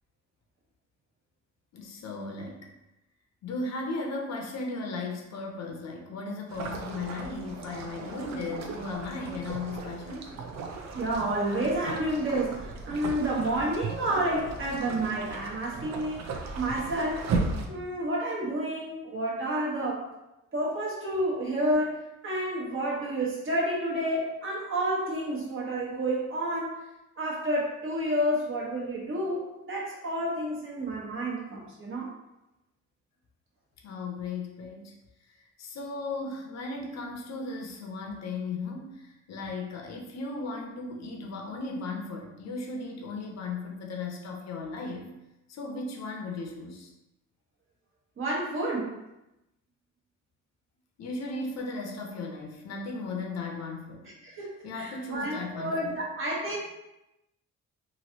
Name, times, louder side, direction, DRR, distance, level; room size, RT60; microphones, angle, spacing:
voice 1, 1.7-2.7 3.4-10.3 33.8-34.9 35.3-45.1 45.5-46.9 51.0-54.1 54.6-56.0, left 3 dB, 60° left, 1 dB, 0.7 m, -36 dB
sound 1, 6.5-17.7, right 4 dB, 65° right, 0.5 m, -36 dB
voice 2, 10.9-17.2 17.7-20.0 20.5-26.8 27.2-32.1 48.2-49.0 54.2-56.6, right 1 dB, 45° right, -4 dB, 1.1 m, -30 dB
3.1 x 2.6 x 2.7 m, 0.93 s
cardioid pair, 90°, 30 cm